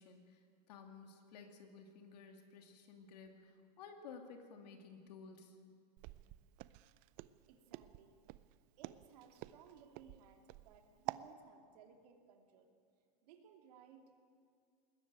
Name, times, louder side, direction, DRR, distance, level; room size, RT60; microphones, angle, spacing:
voice 1, 0.0-5.6, left 5 dB, 75° left, 4 dB, 2.2 m, -55 dB
Walk footsteps, 6.0-11.3, right 19 dB, 40° right, 0.5 m, -48 dB
voice 2, 7.5-8.2 8.8-12.7 13.2-14.0, right 7 dB, 70° right, 3 dB, 2.8 m, -61 dB
20.0 x 14.5 x 9.0 m, 2.2 s
supercardioid pair, 150°, 21 cm